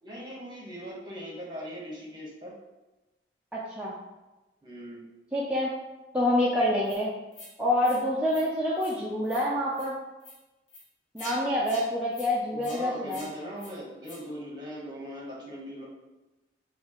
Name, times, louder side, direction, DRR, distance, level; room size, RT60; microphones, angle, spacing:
voice 1, 0.0-2.5 4.6-5.0 12.5-15.8, equal, 25° right, -4 dB, 0.9 m, -40 dB
voice 2, 3.5-3.9 5.3-5.7 6.1-7.1 7.6-10.0 11.1-13.3, left 1 dB, 5° right, -6 dB, 0.3 m, -27 dB
sound 1, 6.8-7.0 7.3-7.5 7.8-8.0 8.3-8.4 8.8-9.0 9.2-9.4 9.7-9.9 10.2-10.4 10.7-10.8 11.2-11.4 11.6-11.8 12.1-12.3 12.6-12.8 13.1-13.3 13.6-13.7 14.0-14.2, left 1 dB, 90° left, 1.0 m, -45 dB
4.3 x 2.4 x 2.9 m, 1.1 s
head